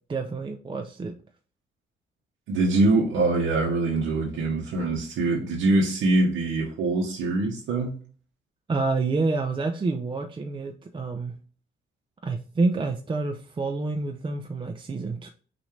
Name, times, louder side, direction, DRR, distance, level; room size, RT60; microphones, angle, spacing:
voice 1, 0.1-1.1 8.7-11.3 12.2-15.3, right 3 dB, 25° right, 0.5 m, -28 dB
voice 2, 2.5-7.9, right 2 dB, 90° right, 1.1 m, -23 dB
6.0 x 2.7 x 3.2 m
cardioid pair, 90°, 20 cm